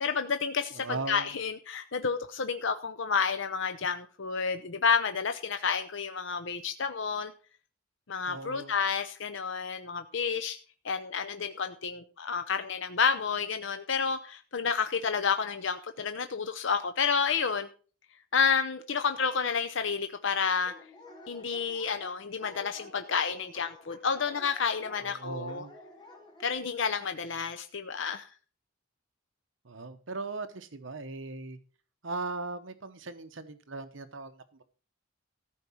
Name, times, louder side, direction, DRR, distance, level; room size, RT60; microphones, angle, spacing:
voice 1, 0.0-7.3 8.1-10.6 10.8-17.7 18.3-20.7 21.3-25.6 26.4-28.3, left 6 dB, 65° left, 8 dB, 0.7 m, -30 dB
voice 2, 0.7-1.3 8.3-8.8 25.0-25.8 29.6-31.6 32.0-34.6, right 3 dB, 65° right, 10 dB, 1.0 m, -38 dB
Dog, 20.6-26.5, left 1 dB, 20° left, 2.7 m, -51 dB
14.0 x 4.7 x 7.2 m, 0.38 s
head